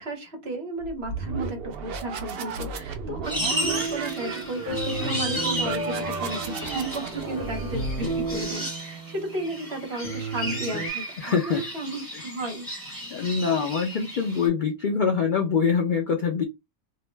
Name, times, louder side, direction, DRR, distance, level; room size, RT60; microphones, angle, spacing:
voice 1, 0.0-12.7, right 1 dB, 55° right, 0.9 m, -34 dB
sound 1, 0.8-8.5, right 5 dB, 75° right, 0.5 m, -34 dB
sound 2, 3.2-14.5, right 1 dB, 15° right, 1.0 m, -34 dB
sound 3, 3.4-10.9, right 2 dB, 55° left, 1.1 m, -33 dB
voice 2, 11.2-11.6 13.1-16.4, left 6 dB, 75° left, 0.4 m, -24 dB
2.6 x 2.0 x 3.2 m
omnidirectional pair, 1.5 m